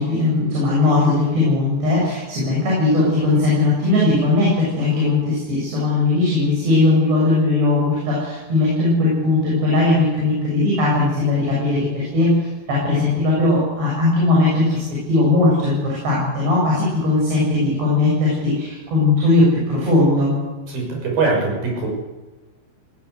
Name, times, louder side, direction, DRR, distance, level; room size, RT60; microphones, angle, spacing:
voice 1, 0.0-20.3, left 2 dB, 85° right, -5 dB, 9.3 m, -18 dB
voice 2, 20.7-21.9, right 3 dB, 60° right, 0 dB, 8.2 m, -22 dB
18.5 x 18.5 x 8.2 m, 1.2 s
omnidirectional pair, 4.8 m